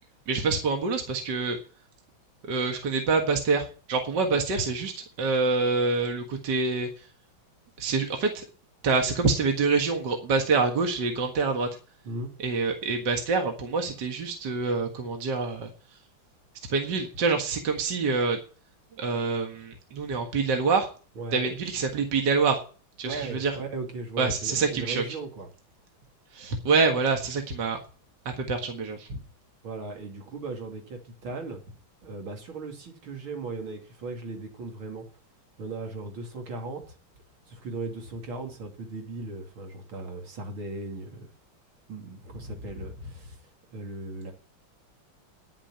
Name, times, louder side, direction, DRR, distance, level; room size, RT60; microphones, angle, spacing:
voice 1, 0.3-1.6 2.4-7.1 7.8-8.4 8.8-11.7 12.4-15.7 16.7-18.4 19.0-20.9 21.3-22.6 23.0-23.6 24.2-25.0 26.3-27.8 28.3-29.2, right 4 dB, 60° right, 4 dB, 2.3 m, -26 dB
voice 2, 21.2-21.5 23.1-25.5 29.6-31.6 32.0-35.0 35.6-36.9 37.5-41.3 41.9-43.4 43.7-44.3, right 3 dB, 80° right, 3 dB, 3.4 m, -37 dB
10.0 x 7.5 x 8.7 m, 0.38 s
omnidirectional pair, 2.2 m